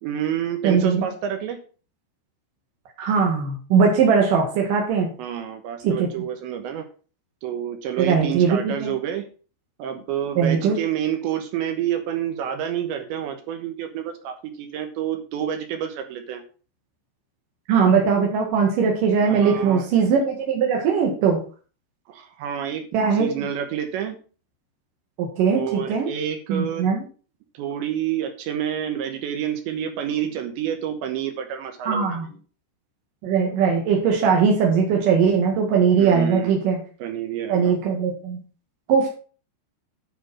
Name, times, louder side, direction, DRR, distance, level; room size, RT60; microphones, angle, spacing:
voice 1, 0.0-1.6 5.2-6.9 7.4-9.3 9.8-16.4 19.2-19.9 22.1-22.9 23.1-24.2 25.5-26.9 27.5-32.3 36.0-36.6 37.0-37.7, right 10 dB, 70° right, 7 dB, 3.1 m, -28 dB
voice 2, 0.6-1.1 3.0-5.1 5.8-6.1 8.0-8.9 10.4-10.8 17.7-21.4 22.9-23.3 25.2-26.1 26.5-27.0 31.9-32.3 33.2-36.8 37.5-38.4 38.9-39.1, right 6 dB, 55° right, 0 dB, 2.8 m, -20 dB
10.0 x 6.1 x 6.2 m, 0.38 s
omnidirectional pair, 5.9 m